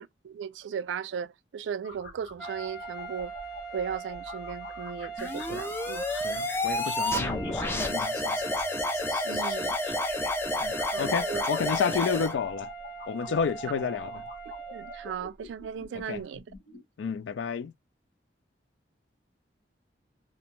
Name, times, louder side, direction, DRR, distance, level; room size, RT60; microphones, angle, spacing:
voice 1, 0.0-3.3 3.7-6.0 9.2-9.8 10.9-11.4 13.3-13.4 14.7-16.4, right 7 dB, 85° right, 0.3 m, -36 dB
sound 1, 1.8-16.8, left 3 dB, 75° left, 1.1 m, -47 dB
sound 2, 2.4-15.2, right 5 dB, 5° right, 0.7 m, -41 dB
sound 3, 5.2-12.3, left 1 dB, 15° left, 0.3 m, -30 dB
voice 2, 6.1-8.4 10.6-12.7 13.1-14.2 16.1-16.2 17.0-17.7, left 6 dB, 90° left, 0.3 m, -31 dB
2.5 x 2.1 x 2.9 m
head